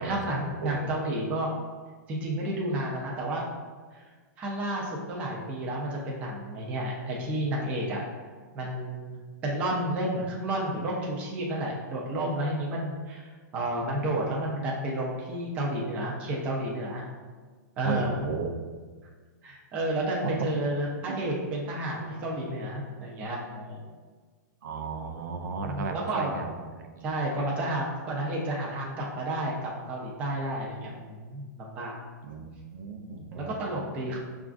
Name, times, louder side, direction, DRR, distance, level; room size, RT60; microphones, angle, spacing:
voice 1, 0.0-1.5 2.1-3.4 3.9-4.0 4.4-8.0 8.5-17.0 17.8-18.2 19.4-23.8 25.6-26.4 27.0-32.0 33.0-34.2, right 1 dB, 15° right, -3 dB, 0.4 m, -31 dB
voice 2, 17.8-18.5 20.2-20.5 21.1-21.2 24.6-27.0 32.2-33.5 34.1-34.2, right 5 dB, 70° right, 4 dB, 0.5 m, -35 dB
5.9 x 2.4 x 2.4 m, 1.5 s
hypercardioid pair, 175°, 10 cm